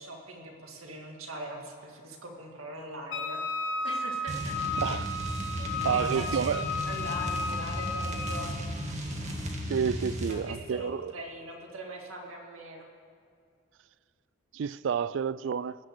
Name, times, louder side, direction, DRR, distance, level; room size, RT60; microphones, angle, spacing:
voice 1, 0.0-3.4 3.8-4.6 5.6-6.5 6.9-8.5 10.3-12.9, right 1 dB, 90° right, 2.1 m, -41 dB
Wind instrument woodwind instrument, 3.1-8.5, left 2 dB, 60° left, 0.9 m, -34 dB
sound 1, 4.3-10.4, equal, 35° right, 1.8 m, -35 dB
voice 2, 4.8-5.1 5.8-6.7 9.7-11.1 14.5-15.8, right 7 dB, 60° right, 0.3 m, -29 dB
19.0 x 6.5 x 7.9 m
head